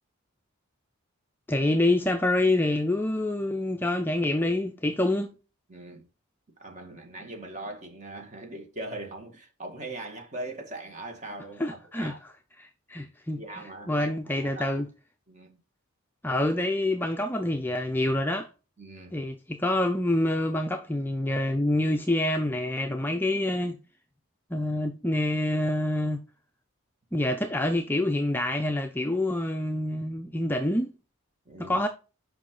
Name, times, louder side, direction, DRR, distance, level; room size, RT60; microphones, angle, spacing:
voice 1, 1.5-5.3 11.6-12.1 12.6-13.4 13.9-14.9 16.2-18.5 19.1-23.8 24.5-26.2 27.1-30.9 31.6-31.9, left 1 dB, 10° left, 0.4 m, -26 dB
voice 2, 5.7-6.1 6.6-12.2 13.4-14.7 15.3-15.6 18.8-19.2 31.5-31.8, right 2 dB, 35° right, 1.9 m, -40 dB
7.4 x 5.4 x 3.8 m
head